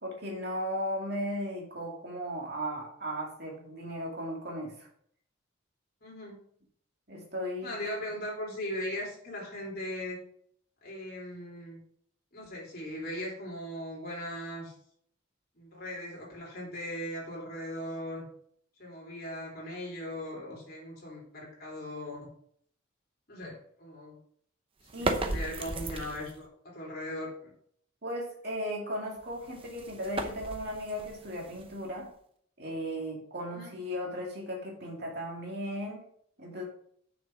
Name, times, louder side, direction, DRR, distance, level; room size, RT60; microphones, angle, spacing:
voice 1, 0.0-4.9 7.1-7.9 24.9-25.4 28.0-32.1 32.6-36.0 36.4-36.7, equal, 50° right, -1 dB, 2.4 m, -36 dB
voice 2, 6.0-6.4 7.6-10.2 10.8-11.8 12.3-14.7 15.6-18.2 18.8-22.3 23.3-24.2 25.0-27.5 33.4-33.7, left 1 dB, 45° left, -3 dB, 3.5 m, -39 dB
sound 1, 24.8-26.5 29.2-32.1, right 2 dB, 25° right, 0.7 m, -36 dB
6.7 x 6.6 x 4.9 m, 0.63 s
head